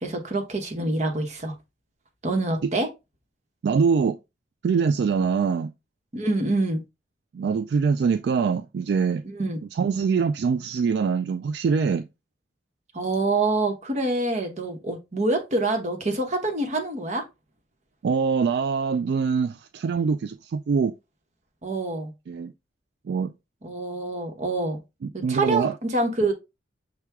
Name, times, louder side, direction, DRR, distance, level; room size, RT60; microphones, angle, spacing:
voice 1, 0.0-1.5 2.2-2.9 6.1-6.8 9.2-9.6 12.9-17.3 21.6-22.1 23.6-24.8 25.1-26.3, right 2 dB, 40° right, 1.0 m, -26 dB
voice 2, 3.6-4.2 4.6-5.7 7.3-9.2 9.8-12.1 18.0-20.9 22.3-22.5 23.1-23.3 25.0-25.7, right 5 dB, 65° right, 0.3 m, -24 dB
5.9 x 2.2 x 3.4 m
head